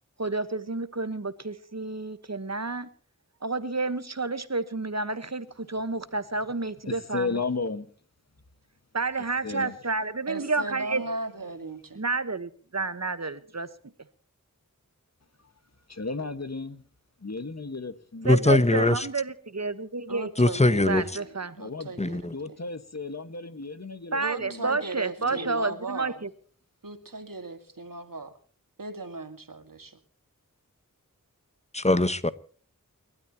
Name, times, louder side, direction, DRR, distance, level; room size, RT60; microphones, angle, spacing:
voice 1, 0.2-2.9 3.4-7.4 8.9-11.0 11.9-13.7 18.2-20.3 20.9-21.6 24.1-26.3, right 3 dB, 55° right, 1.2 m, -30 dB
voice 2, 6.8-7.9 9.4-9.8 15.4-15.5 15.9-16.8 17.2-18.5 21.6-22.0 22.3-24.7 25.2-25.8, left 4 dB, 50° left, 1.5 m, -34 dB
voice 3, 10.3-12.0 20.1-22.3 24.2-26.2 26.8-28.3 28.8-30.0, right 3 dB, 80° right, 1.9 m, -37 dB
voice 4, 18.2-19.1 20.4-21.0 22.0-22.3 31.7-32.3, left 2 dB, 20° left, 1.1 m, -21 dB
29.5 x 12.5 x 2.9 m
wide cardioid pair, 45°, 33 cm